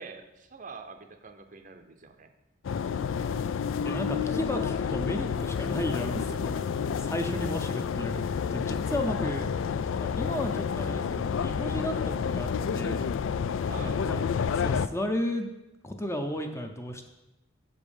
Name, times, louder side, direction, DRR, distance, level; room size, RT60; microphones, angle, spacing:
voice 1, 0.0-2.3 13.6-14.0, right 4 dB, 40° right, 7 dB, 0.6 m, -45 dB
sound 1, 2.6-14.9, left 6 dB, 70° left, 0.3 m, -30 dB
voice 2, 3.8-6.6 6.9-8.2 8.5-9.5 10.0-13.1 13.7-14.2 14.5-15.5 15.8-17.1, left 1 dB, 15° left, 4 dB, 0.6 m, -34 dB
7.2 x 5.2 x 7.0 m, 0.98 s
head